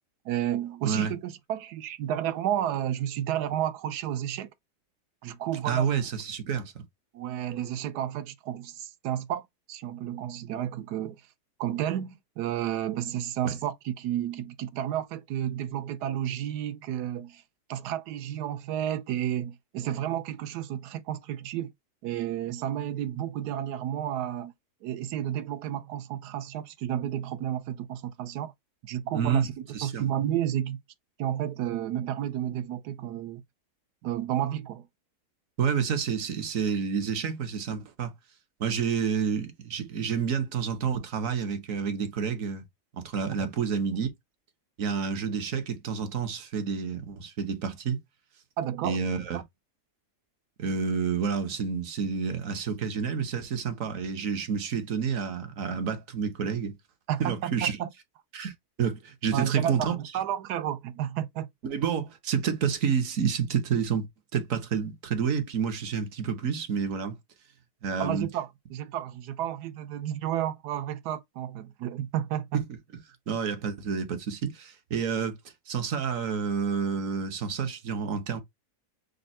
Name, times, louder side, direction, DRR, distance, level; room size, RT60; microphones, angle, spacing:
voice 1, 0.2-4.5 5.2-6.0 7.1-11.2 11.6-17.4 17.7-21.7 22.0-24.5 24.8-28.5 28.8-30.8 31.2-33.4 34.0-34.9 43.4-43.5 48.6-49.4 57.1-57.9 59.3-61.5 68.0-72.6, right 11 dB, 80° right, 1.2 m, -31 dB
voice 2, 5.6-6.8 13.4-13.5 29.1-30.0 35.6-38.1 38.6-42.6 42.9-44.1 44.8-48.0 48.8-49.4 50.6-56.7 57.2-57.8 58.3-58.5 58.8-60.0 61.6-64.1 64.3-67.1 67.8-68.3 72.5-72.6 73.3-75.4 75.7-78.4, right 6 dB, 60° right, 1.2 m, -29 dB
5.3 x 2.2 x 4.2 m
omnidirectional pair, 1.7 m